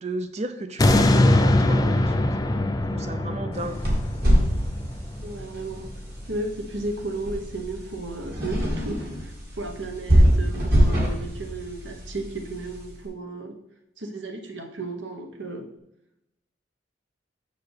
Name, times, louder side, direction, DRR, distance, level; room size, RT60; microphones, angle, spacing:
voice 1, 0.0-3.8, right 2 dB, 35° right, 9 dB, 0.5 m, -34 dB
sound 1, 0.8-5.9 6.4-6.5, left 1 dB, 20° left, 0.4 m, -22 dB
sound 2, 3.5-12.9, equal, 50° right, 2.1 m, -24 dB
voice 2, 5.2-5.9 6.3-13.6 14.0-15.7, right 2 dB, 70° right, 5 dB, 1.0 m, -34 dB
6.7 x 6.7 x 3.3 m, 0.86 s
head